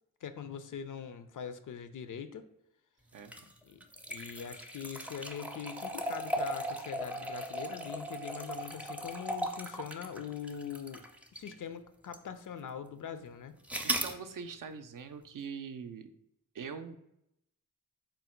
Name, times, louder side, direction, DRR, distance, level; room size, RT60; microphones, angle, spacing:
voice 1, 0.2-2.4 3.6-11.0 11.3-13.6, left 7 dB, 55° left, 11 dB, 0.4 m, -42 dB
sound 1, 3.2-11.6 12.1-12.2 13.7-14.2, right 1 dB, 5° right, 0.5 m, -37 dB
voice 2, 13.8-16.1 16.5-17.0, right 6 dB, 55° right, 8 dB, 0.5 m, -43 dB
3.8 x 2.1 x 4.3 m, 0.81 s
cardioid pair, 45°, 38 cm